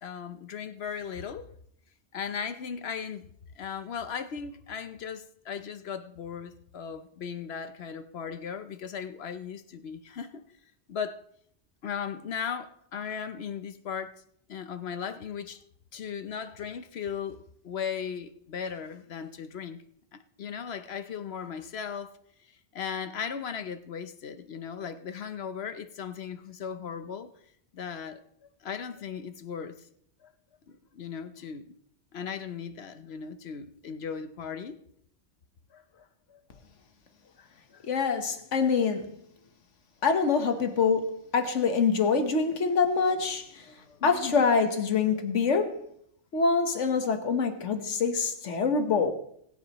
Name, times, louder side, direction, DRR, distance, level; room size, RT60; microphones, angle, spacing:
voice 1, 0.0-1.5 2.1-3.3 3.6-10.4 10.9-11.2 11.8-14.2 14.5-15.6 15.9-19.8 20.1-22.2 22.7-27.3 27.7-28.2 28.6-29.8 30.2-30.3 30.7-31.7 32.1-34.8 35.7-36.4 37.4-37.5 37.7-37.8 44.0-44.5, left 7 dB, 65° left, 0.9 m, -37 dB
voice 2, 37.9-39.1 40.0-43.6 44.0-45.8 46.3-49.1, left 5 dB, 80° left, 1.4 m, -25 dB
20.5 x 9.2 x 3.0 m
omnidirectional pair, 1.2 m